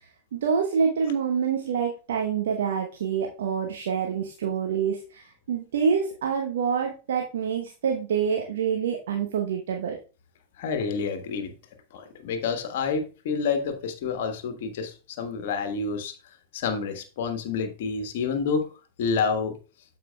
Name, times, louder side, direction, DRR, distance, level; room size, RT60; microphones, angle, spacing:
voice 1, 0.3-10.0, right 6 dB, 65° right, 0.9 m, -26 dB
voice 2, 10.6-11.5 11.9-16.1 16.5-18.7 19.0-19.5, left 5 dB, 55° left, 1.3 m, -28 dB
12.5 x 4.9 x 2.3 m
figure-of-eight pair, 90°, 0 cm